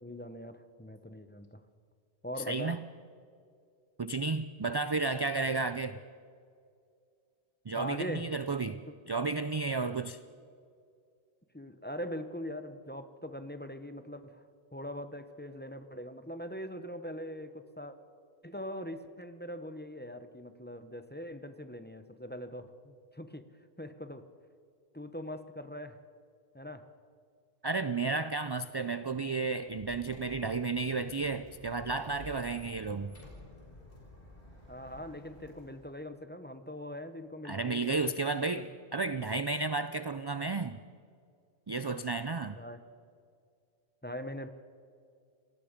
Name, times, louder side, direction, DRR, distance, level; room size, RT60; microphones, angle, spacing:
voice 1, 0.0-1.6 2.2-2.8 7.8-8.3 8.6-8.9 11.5-14.4 14.7-18.0 18.4-23.5 23.8-24.2 24.9-26.0 26.5-26.9 32.7-32.8 34.7-38.7 42.6-42.8 44.0-44.5, equal, 10° left, 9 dB, 0.8 m, -42 dB
voice 2, 2.5-2.8 4.0-6.0 7.7-8.8 9.1-10.2 27.6-33.1 37.4-40.8 41.7-42.6, right 3 dB, 40° right, 12 dB, 0.3 m, -32 dB
Squeak, 29.6-36.0, left 1 dB, 55° left, 5.4 m, -52 dB
27.0 x 19.0 x 5.2 m, 2.3 s
omnidirectional pair, 1.1 m